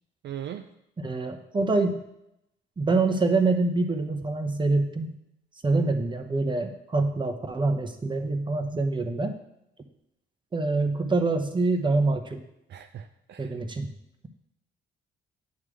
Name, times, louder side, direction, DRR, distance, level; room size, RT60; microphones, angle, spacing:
voice 1, 0.2-0.7 12.7-13.6, right 10 dB, 60° right, 8 dB, 0.5 m, -39 dB
voice 2, 1.0-2.0 2.8-5.1 5.6-9.4 10.5-12.4 13.4-13.9, right 3 dB, 25° right, 6 dB, 0.9 m, -25 dB
9.5 x 3.3 x 6.2 m, 0.81 s
cardioid pair, 90°, 20 cm